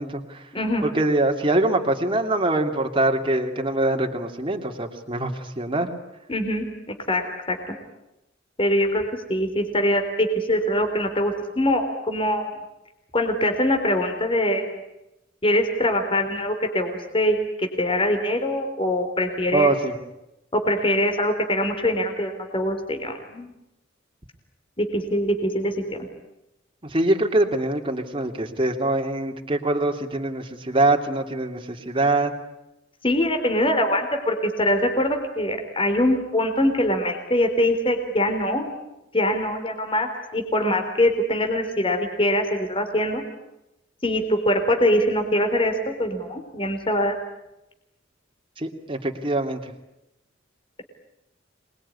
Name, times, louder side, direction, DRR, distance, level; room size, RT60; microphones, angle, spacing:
voice 1, 0.0-0.4 0.8-5.9 19.5-20.0 26.8-32.3 48.6-49.7, right 2 dB, 30° right, 3 dB, 2.6 m, -23 dB
voice 2, 0.5-0.8 6.3-7.7 8.6-9.0 9.3-12.5 13.1-14.8 15.4-19.7 20.5-23.5 24.8-25.8 33.0-38.7 39.1-43.2 44.0-47.2, left 1 dB, 30° left, 5 dB, 3.8 m, -23 dB
26.5 x 21.5 x 9.8 m, 0.91 s
head